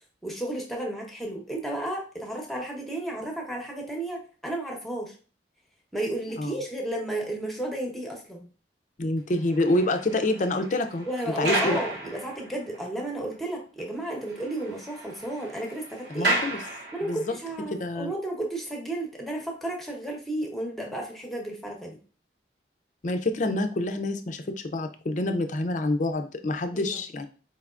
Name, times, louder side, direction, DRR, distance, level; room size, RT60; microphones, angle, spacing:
voice 1, 0.2-5.1 5.9-8.5 11.1-16.4 16.9-22.0 26.7-27.0, right 1 dB, ahead, -1 dB, 0.9 m, -33 dB
voice 2, 9.0-11.1 11.4-11.8 16.1-16.6 17.0-17.2 17.7-18.1 23.0-27.3, left 2 dB, 45° left, 7 dB, 0.5 m, -27 dB
sound 1, 9.3-12.8 13.3-13.4 13.8-13.9 14.2-17.4, right 2 dB, 65° right, 1.0 m, -33 dB
4.6 x 3.4 x 2.4 m, 0.37 s
head